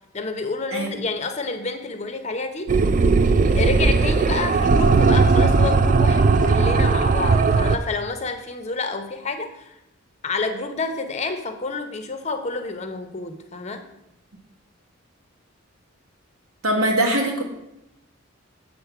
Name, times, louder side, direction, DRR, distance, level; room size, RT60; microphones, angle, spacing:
voice 1, 0.1-2.7 3.6-9.8 10.2-13.9, left 3 dB, 30° left, 7 dB, 0.6 m, -29 dB
sound 1, 2.7-7.8, right 4 dB, 40° right, 0.3 m, -17 dB
voice 2, 16.6-17.4, right 1 dB, 85° right, 1 dB, 1.5 m, -21 dB
8.1 x 3.8 x 5.8 m, 0.87 s
head